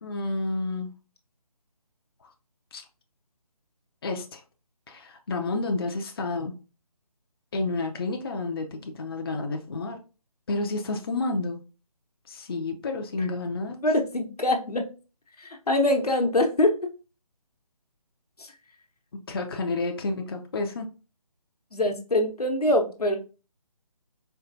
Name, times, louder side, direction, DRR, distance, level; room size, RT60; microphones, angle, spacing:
voice 1, 0.0-0.9 2.7-2.8 4.0-4.4 4.9-6.6 7.5-10.0 10.5-11.6 12.3-13.8 19.1-20.9, left 3 dB, 40° left, 3 dB, 0.4 m, -30 dB
voice 2, 13.8-14.9 15.4-16.8 18.4-18.5 21.7-23.2, left 1 dB, 85° left, 4 dB, 0.9 m, -24 dB
4.4 x 2.3 x 2.5 m, 0.33 s
figure-of-eight pair, 150°, 19 cm